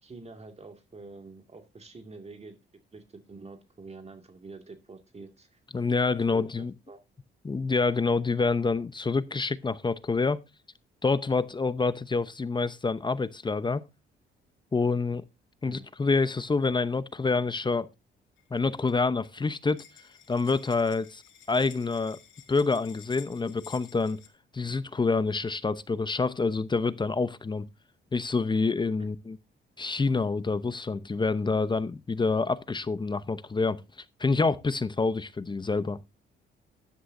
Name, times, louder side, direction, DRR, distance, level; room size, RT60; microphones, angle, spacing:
voice 1, 0.0-2.6 2.9-5.6 6.3-7.0 15.6-15.8, right 3 dB, 30° right, 2.1 m, -47 dB
voice 2, 5.7-6.7 7.4-10.4 11.0-13.8 14.7-15.2 15.6-17.9 18.5-19.8 20.3-21.2 21.5-22.2 22.5-24.2 24.5-27.7 28.1-29.4 29.8-33.8 34.2-36.0, left 4 dB, 25° left, 0.8 m, -27 dB
sound 1, 18.4-18.9 19.2-19.3 19.5-24.3, left 9 dB, 70° left, 2.5 m, -52 dB
12.5 x 11.5 x 2.6 m
cardioid pair, 90°, 20 cm